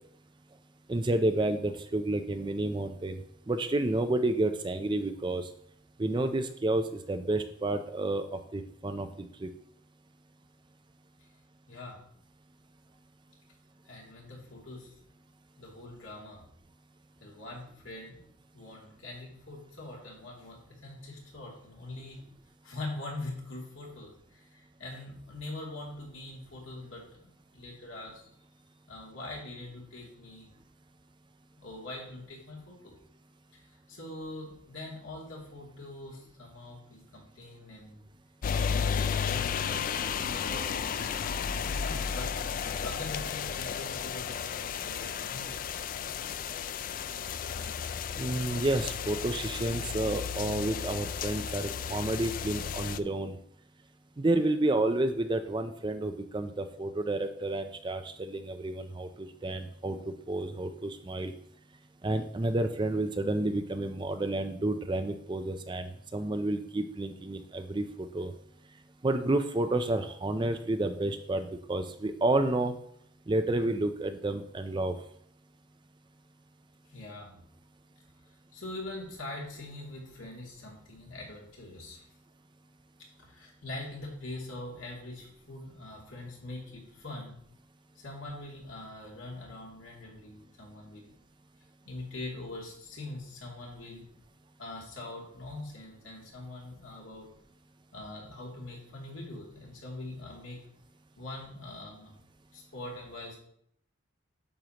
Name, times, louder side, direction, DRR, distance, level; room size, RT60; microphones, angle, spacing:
voice 1, 0.9-5.5 6.0-9.1 9.4-9.5 48.2-53.4 54.2-61.3 62.0-68.3 69.0-72.8 73.3-75.0, right 2 dB, 20° right, 8 dB, 0.4 m, -30 dB
voice 2, 11.7-12.0 13.9-14.9 15.6-16.4 17.2-18.2 18.5-22.3 22.6-28.2 28.9-30.5 31.6-32.9 33.5-33.6 33.9-38.1 38.6-42.3 42.8-45.9 76.9-77.4 78.5-82.0 83.2-87.4 87.9-91.1 91.9-94.1 94.6-97.3 97.9-100.6 101.2-102.2 102.5-103.4, left 2 dB, 70° left, -3 dB, 2.7 m, -43 dB
sound 1, 38.4-53.0, left 7 dB, 40° left, 0.3 m, -33 dB
9.0 x 6.5 x 2.9 m, 0.68 s
head